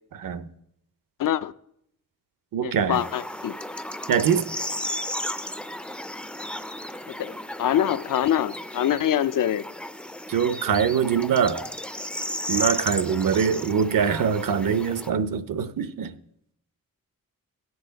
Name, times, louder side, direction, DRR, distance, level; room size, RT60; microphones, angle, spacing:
voice 1, 0.1-0.5 2.5-3.0 4.1-4.5 10.3-11.6 12.5-16.2, right 7 dB, 70° right, 0.8 m, -23 dB
voice 2, 1.2-1.5 2.6-3.6 7.1-7.3 7.6-9.7, left 11 dB, 65° left, 0.5 m, -24 dB
sound 1, 2.9-15.1, left 1 dB, 5° left, 0.4 m, -34 dB
18.5 x 8.0 x 4.0 m
wide cardioid pair, 160°, 35 cm